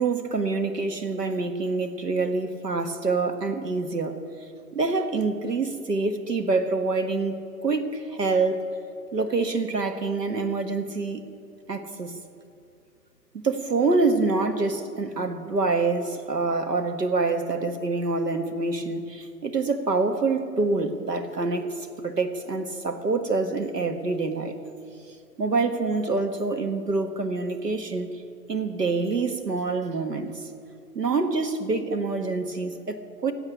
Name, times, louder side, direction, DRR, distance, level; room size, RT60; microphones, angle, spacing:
voice 1, 0.0-4.2 4.7-8.7 9.1-11.3 11.7-12.1 13.4-21.8 22.0-24.6 25.4-28.1 28.5-30.5 31.0-33.3, right 3 dB, 75° right, 7 dB, 1.7 m, -26 dB
16.0 x 8.0 x 9.9 m, 2.4 s
figure-of-eight pair, 125°, 49 cm